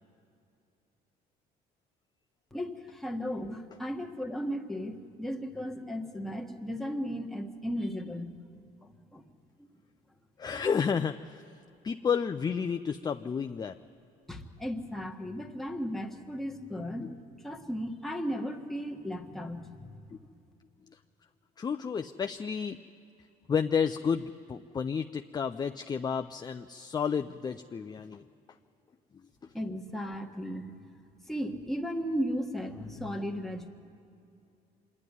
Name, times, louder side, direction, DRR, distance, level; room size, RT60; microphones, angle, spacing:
voice 1, 2.5-8.4 8.8-9.2 9.6-9.7 10.5-10.7 14.3-17.1 17.4-20.0 29.5-30.7 31.3-33.7, equal, ahead, 1 dB, 1.5 m, -35 dB
voice 2, 10.4-11.4 11.8-13.8 17.0-17.1 21.6-22.8 23.5-28.2, left 6 dB, 25° left, 8 dB, 0.4 m, -31 dB
25.0 x 11.0 x 9.9 m, 2.6 s
cardioid pair, 110°, 17 cm